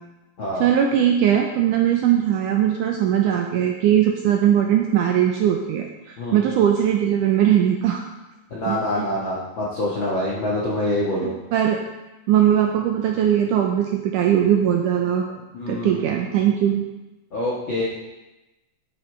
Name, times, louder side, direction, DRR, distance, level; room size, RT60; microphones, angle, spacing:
voice 1, 0.6-5.9 6.3-8.0 8.7-9.1 11.2-11.8 12.3-15.3 15.7-16.8, right 10 dB, 85° right, 2 dB, 1.9 m, -20 dB
voice 2, 6.2-6.5 8.5-11.3 15.3-16.1 17.3-17.8, left 1 dB, 60° left, -6 dB, 1.3 m, -26 dB
11.0 x 8.1 x 3.3 m, 1.0 s
omnidirectional pair, 4.2 m